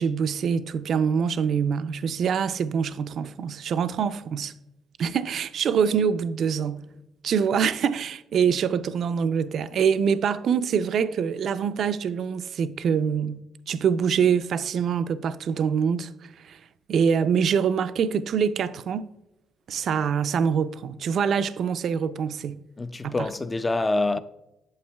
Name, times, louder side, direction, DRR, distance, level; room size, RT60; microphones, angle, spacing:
voice 1, 0.0-4.5 5.0-6.8 7.2-16.6 16.9-19.0 19.7-22.6 23.0-23.2, right 7 dB, 60° right, 0.4 m, -25 dB
voice 2, 22.8-24.2, left 2 dB, 20° left, 0.3 m, -26 dB
8.5 x 7.7 x 2.2 m
cardioid pair, 105°, 0 cm